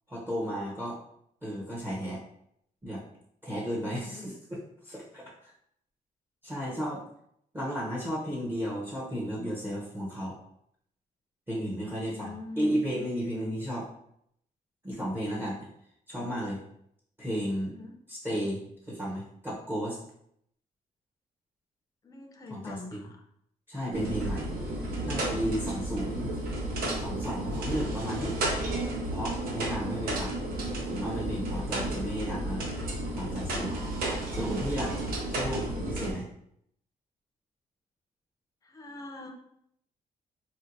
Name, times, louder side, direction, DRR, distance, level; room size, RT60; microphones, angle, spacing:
voice 1, 0.1-1.0 1.4-2.2 2.8-3.0 3.4-4.6 4.8-5.5 6.4-7.0 7.5-10.4 11.5-13.9 14.8-15.6 16.1-16.6 17.2-17.7 18.1-18.6 18.9-20.0 22.5-22.8 23.7-24.5 25.0-26.3 27.0-28.3 29.1-30.4 30.9-32.7 33.1-33.8 34.3-35.0 35.3-36.3, equal, 15° right, -5 dB, 0.7 m, -33 dB
voice 2, 3.7-4.3 11.8-12.7 17.6-18.0 22.0-23.3 35.2-35.5 38.6-39.3, left 3 dB, 25° left, 3 dB, 0.5 m, -44 dB
sound 1, 23.9-36.1, right 1 dB, 85° right, 0.8 m, -32 dB
4.2 x 2.1 x 2.6 m, 0.73 s
cardioid pair, 115°, 15 cm